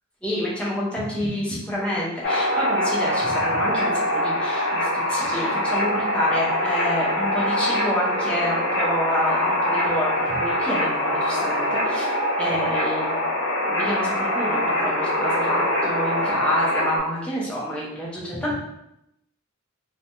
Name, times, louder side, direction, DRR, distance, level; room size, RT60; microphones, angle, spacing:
voice 1, 0.2-12.1 12.4-13.3 13.7-18.5, equal, 5° left, -7 dB, 0.7 m, -28 dB
sound 1, 2.2-17.0, left 1 dB, 55° left, 0.6 m, -24 dB
3.2 x 2.2 x 2.6 m, 0.82 s
head